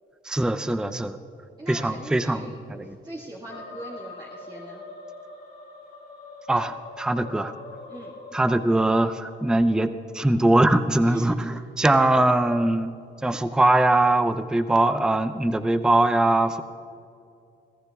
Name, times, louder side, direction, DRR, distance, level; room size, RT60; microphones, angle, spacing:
voice 1, 0.2-1.2 1.7-3.0 6.5-7.5 8.3-9.9 10.1-12.9 13.2-16.6, right 1 dB, 5° right, 11 dB, 0.5 m, -21 dB
voice 2, 1.6-4.8 7.9-8.2 11.0-11.5, right 1 dB, 20° right, -4 dB, 1.7 m, -40 dB
sound 1, 3.5-9.8, left 3 dB, 55° left, 2.2 m, -43 dB
24.0 x 15.0 x 2.4 m, 2.6 s
cardioid pair, 90°, 20 cm